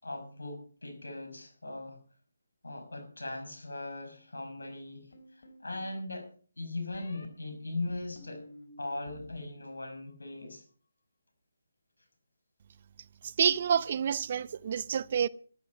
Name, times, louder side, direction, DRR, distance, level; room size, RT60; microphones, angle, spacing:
voice 1, 0.0-2.0 2.6-5.1 5.3-6.2 6.6-8.4 8.8-10.6, left 2 dB, 90° left, 6.2 m, -39 dB
sound 1, 5.1-5.9 6.9-7.3 7.9-9.4 9.7-10.3, left 1 dB, 60° left, 3.8 m, -52 dB
voice 2, 13.2-15.3, right 8 dB, 40° right, 0.6 m, -28 dB
13.5 x 13.0 x 5.4 m
figure-of-eight pair, 160°, 0 cm